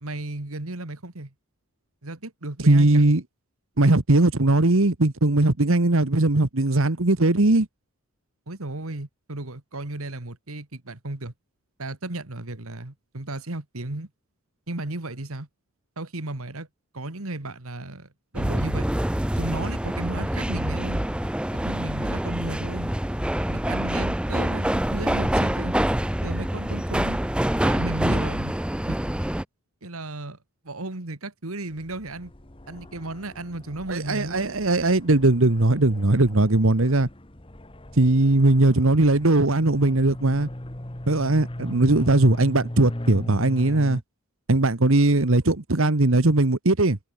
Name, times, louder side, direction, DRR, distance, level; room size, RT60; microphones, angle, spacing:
voice 1, 0.0-1.3 2.0-3.0 8.5-11.3 11.8-14.1 14.7-15.5 16.0-16.7 16.9-18.9 19.4-21.0 21.5-22.9 23.5-25.7 26.2-27.2 27.6-28.6 28.8-29.0 29.8-30.4 30.6-32.3 32.7-34.5, right 2 dB, 85° right, 2.1 m, -34 dB
voice 2, 2.6-3.2 3.8-7.7 33.9-37.1 37.9-40.5 41.1-44.0 44.5-47.0, right 2 dB, 70° right, 1.4 m, -19 dB
sound 1, 18.3-29.4, right 1 dB, 5° right, 0.5 m, -26 dB
sound 2, 31.7-44.0, left 1 dB, 25° left, 1.6 m, -38 dB
head